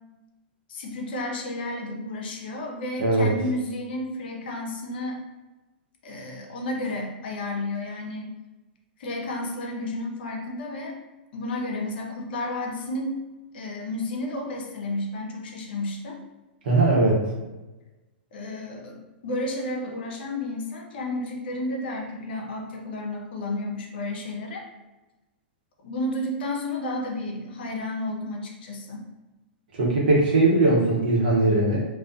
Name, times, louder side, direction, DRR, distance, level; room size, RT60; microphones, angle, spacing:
voice 1, 0.7-5.2 6.0-8.3 9.0-11.0 11.3-13.2 13.5-16.2 18.3-24.6 25.8-29.0, left 1 dB, 65° left, 1 dB, 0.6 m, -32 dB
voice 2, 3.0-3.3 16.6-17.2 29.7-31.8, right 2 dB, 60° right, -3 dB, 0.8 m, -20 dB
2.4 x 2.2 x 2.4 m, 1.1 s
hypercardioid pair, 115°, 6 cm